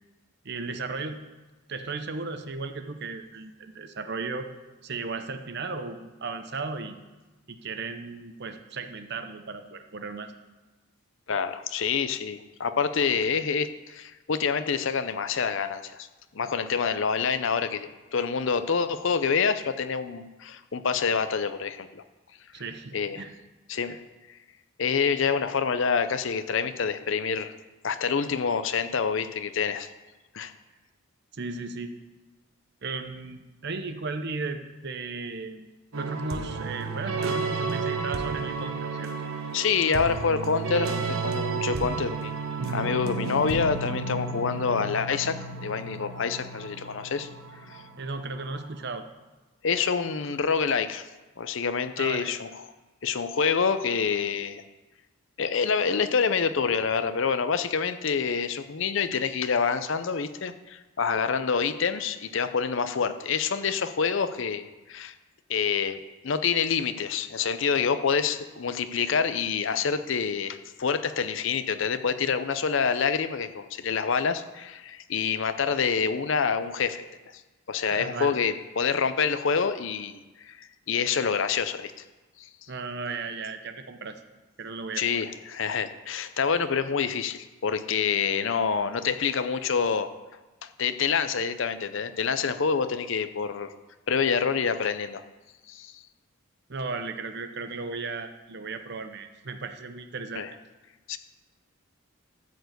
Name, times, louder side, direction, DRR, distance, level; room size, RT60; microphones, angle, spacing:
voice 1, 0.4-1.2 1.7-4.5 4.8-7.0 7.5-10.3 22.5-23.4 23.8-24.0 31.3-31.9 32.8-35.7 36.0-39.1 48.0-49.0 52.0-52.3 77.9-78.4 82.7-84.2 84.6-85.2 96.7-100.5, right 4 dB, 50° right, 8 dB, 0.7 m, -35 dB
voice 2, 11.3-16.1 16.3-22.0 22.9-23.2 23.7-24.0 24.8-27.5 27.8-29.9 30.3-30.5 39.5-42.3 42.7-45.4 45.6-47.3 47.7-47.8 49.6-51.1 51.4-52.6 53.0-54.6 55.4-65.1 65.5-77.0 77.7-81.9 82.4-82.5 85.0-90.1 90.6-93.7 94.1-95.2 95.7-96.0 100.4-100.5 101.1-101.2, left 6 dB, 60° left, 11 dB, 0.6 m, -27 dB
sound 1, 35.9-48.5, right 4 dB, 70° right, 1.0 m, -32 dB
13.0 x 4.6 x 8.0 m, 1.2 s
head